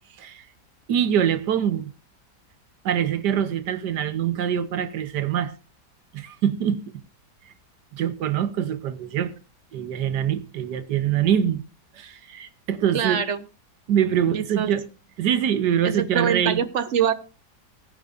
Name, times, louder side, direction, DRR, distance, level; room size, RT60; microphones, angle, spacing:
voice 1, 0.9-1.9 2.8-5.5 6.1-6.8 7.9-9.3 9.7-11.6 11.9-13.2 13.9-14.9 15.2-16.6, right 9 dB, 80° right, 1.6 m, -24 dB
voice 2, 12.9-13.4 14.3-14.7 15.8-17.1, right 8 dB, 50° right, 1.1 m, -24 dB
19.5 x 10.5 x 2.6 m
omnidirectional pair, 1.8 m